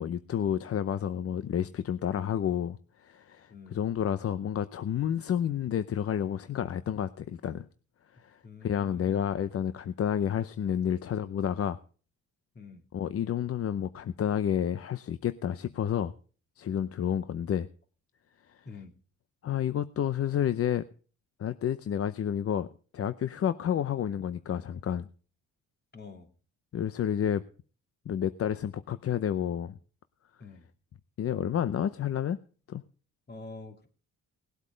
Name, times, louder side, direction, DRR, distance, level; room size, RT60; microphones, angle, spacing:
voice 1, 0.0-7.7 8.1-11.8 12.9-16.1 16.6-17.7 19.4-20.8 21.4-22.7 22.9-25.1 26.7-27.4 28.1-29.8 31.2-32.4 32.7-32.8, left 9 dB, 50° left, 0.7 m, -30 dB
voice 2, 8.4-9.3 12.5-12.8 18.6-18.9 25.9-26.3 30.4-30.7 33.3-33.9, left 4 dB, 35° left, 2.8 m, -46 dB
19.0 x 8.2 x 5.1 m
cardioid pair, 90°, 30 cm